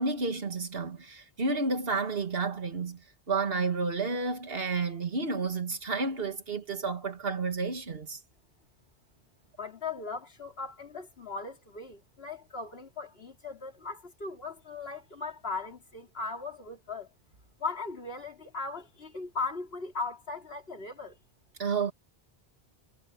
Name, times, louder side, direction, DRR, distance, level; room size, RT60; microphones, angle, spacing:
voice 1, 0.0-3.0 3.3-8.2 21.6-21.9, right 4 dB, 65° right, 1.9 m, -31 dB
voice 2, 9.6-17.1 17.6-21.2, left 4 dB, 70° left, 3.3 m, -38 dB
omnidirectional pair, 1.1 m